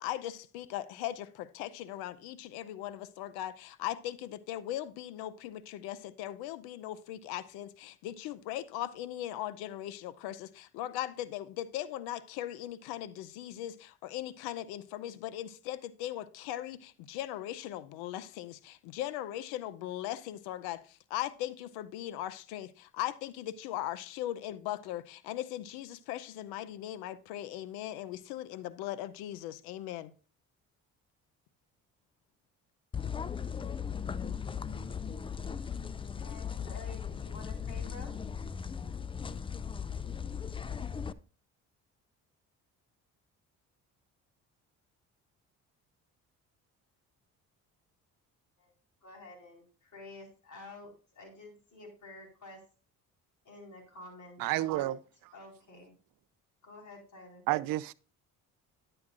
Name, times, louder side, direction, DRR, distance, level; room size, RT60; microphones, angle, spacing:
voice 1, 0.0-30.1, left 13 dB, 90° left, 0.6 m, -39 dB
sound 1, 32.9-41.1, left 7 dB, 15° left, 0.3 m, -37 dB
voice 2, 36.1-38.1 48.6-48.7 49.0-52.6 53.4-54.8 55.3-55.9 56.6-57.4, left 2 dB, 50° left, 4.4 m, -50 dB
voice 3, 54.4-55.0 57.5-57.9, right 16 dB, 65° right, 0.5 m, -30 dB
10.5 x 7.8 x 2.4 m
supercardioid pair, 65°, 37 cm